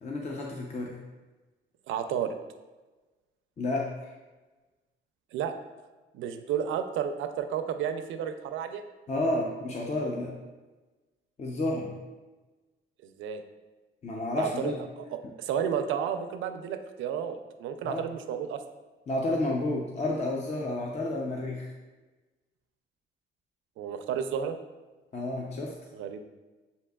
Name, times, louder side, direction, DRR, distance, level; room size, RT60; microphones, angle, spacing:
voice 1, 0.0-1.0 3.6-4.1 9.1-10.3 11.4-11.9 14.0-14.8 17.8-18.0 19.1-21.7 25.1-25.7, left 2 dB, 35° left, -1 dB, 0.6 m, -30 dB
voice 2, 1.9-2.3 5.3-5.5 6.1-8.8 13.0-13.4 14.3-18.6 23.8-24.6 25.9-26.2, right 8 dB, 80° right, 8 dB, 0.4 m, -32 dB
7.5 x 2.8 x 2.3 m, 1.2 s
cardioid pair, 90°, 20 cm